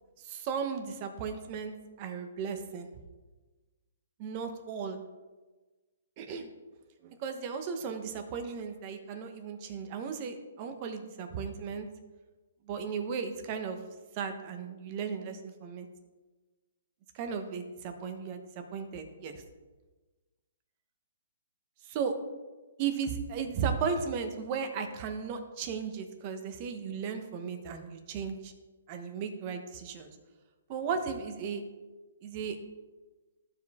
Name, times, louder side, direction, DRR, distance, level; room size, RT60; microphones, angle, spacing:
voice 1, 0.2-2.9 4.2-5.0 6.2-6.5 7.0-11.9 12.7-13.8 14.1-15.9 17.1-19.4 21.8-22.1 22.8-28.5 28.9-30.2 30.7-31.6 32.2-32.6, right 6 dB, 35° right, 7 dB, 1.1 m, -35 dB
14.0 x 4.9 x 3.6 m, 1.2 s
hypercardioid pair, 150°, 0 cm